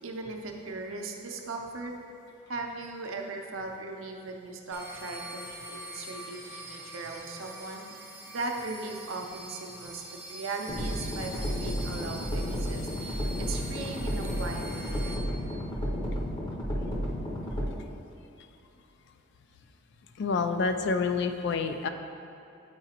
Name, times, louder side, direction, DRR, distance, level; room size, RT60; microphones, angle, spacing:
voice 1, 0.0-1.9 2.5-7.8 8.3-10.0 10.3-15.1, right 3 dB, 70° right, 2 dB, 0.6 m, -38 dB
sound 1, 4.7-15.1, right 1 dB, 10° right, 0.6 m, -44 dB
sound 2, 10.7-17.7, equal, 25° left, 0.7 m, -32 dB
voice 2, 20.2-21.9, left 4 dB, 55° left, 7 dB, 0.3 m, -28 dB
8.0 x 4.8 x 2.9 m, 2.7 s
head